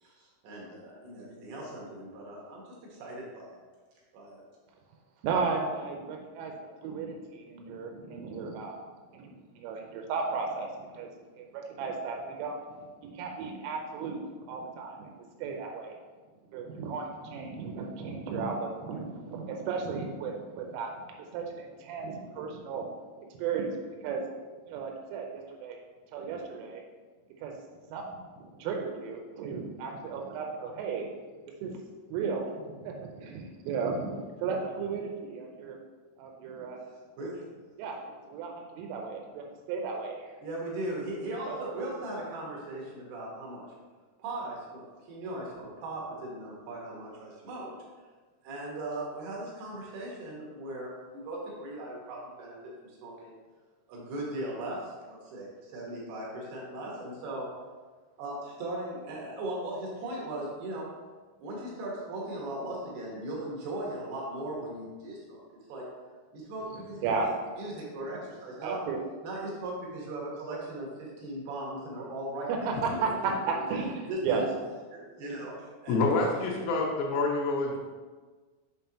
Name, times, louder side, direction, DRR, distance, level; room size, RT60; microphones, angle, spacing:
voice 1, 0.0-2.6 2.9-3.6 4.1-4.5 37.2-37.4 40.4-43.7 44.2-47.7 48.4-52.6 52.9-53.4 53.9-57.5 58.2-60.8 61.4-65.4 65.7-65.8 66.3-67.3 67.6-68.8 69.2-73.7 74.1-74.4 74.9-76.0, right 1 dB, 65° right, 2.7 m, -38 dB
voice 2, 5.2-6.5 6.8-8.8 9.1-11.1 11.4-12.6 13.0-14.2 14.5-15.1 15.4-15.9 16.5-20.9 21.3-22.9 23.4-23.7 24.0-24.2 24.7-25.8 26.1-26.8 27.4-27.5 27.9-28.0 28.4-31.1 31.6-31.7 32.1-32.5 32.8-35.8 36.2-36.8 37.8-40.1 41.5-41.6 67.0-67.3 68.6-69.0 72.5-74.4, right 5 dB, 85° right, 3.2 m, -34 dB
voice 3, 75.9-77.8, left 3 dB, 90° left, 3.2 m, -27 dB
7.2 x 5.5 x 2.9 m
omnidirectional pair, 5.7 m